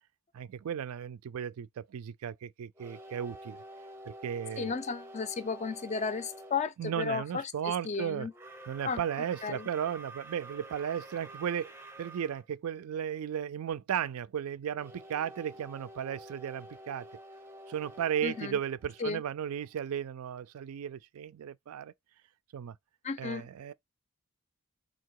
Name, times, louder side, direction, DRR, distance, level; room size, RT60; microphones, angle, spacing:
voice 1, 0.3-3.6 4.1-4.7 6.8-8.3 8.7-17.1 17.7-21.9 22.5-22.8 23.2-23.7, right 8 dB, 80° right, 0.3 m, -35 dB
sound 1, 2.7-6.6 8.3-12.4 14.8-19.6, right 1 dB, 10° right, 0.6 m, -49 dB
voice 2, 4.6-8.3 8.8-9.0 9.4-9.7 18.2-18.6 19.0-19.2 23.0-23.4, left 5 dB, 30° left, 0.4 m, -34 dB
3.7 x 2.8 x 4.5 m
head